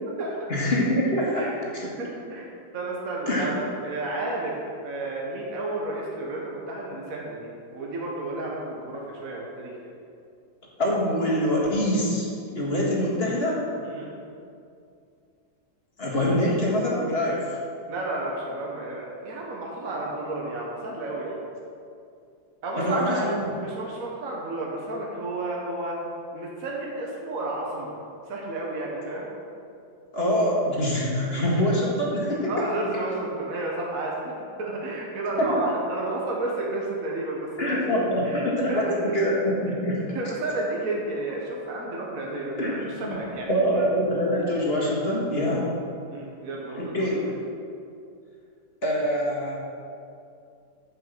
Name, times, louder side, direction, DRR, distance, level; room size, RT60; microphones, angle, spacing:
voice 1, 0.5-1.5 1.7-1.8 3.3-3.5 10.8-13.6 16.0-17.4 22.8-23.5 30.1-32.5 35.4-35.6 37.6-40.0 42.6-43.2 43.5-45.7 46.7-47.2 48.8-49.5, equal, 35° left, -4 dB, 1.9 m, -24 dB
voice 2, 1.8-2.5 2.7-4.6 4.8-7.5 7.7-9.9 13.8-14.1 17.9-21.4 22.6-23.3 23.6-26.0 26.3-27.9 28.3-29.3 32.5-39.2 40.1-43.5 46.1-47.1, right 2 dB, 50° right, -3 dB, 1.7 m, -31 dB
9.5 x 5.5 x 6.7 m, 2.5 s
omnidirectional pair, 1.9 m